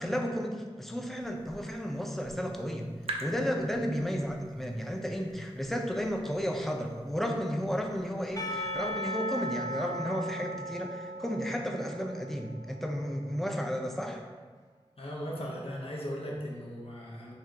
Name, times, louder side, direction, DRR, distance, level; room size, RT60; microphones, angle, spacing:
voice 1, 0.0-2.9 3.2-14.2, equal, 5° left, 2 dB, 0.5 m, -33 dB
sound 1, 1.2-9.0, right 2 dB, 70° right, 0.4 m, -47 dB
voice 2, 3.9-4.4 15.0-17.3, equal, 65° left, -3 dB, 0.7 m, -38 dB
Percussion / Church bell, 8.4-13.4, equal, 35° left, 0.8 m, -38 dB
3.3 x 2.7 x 3.8 m, 1.4 s
wide cardioid pair, 50°, 10 cm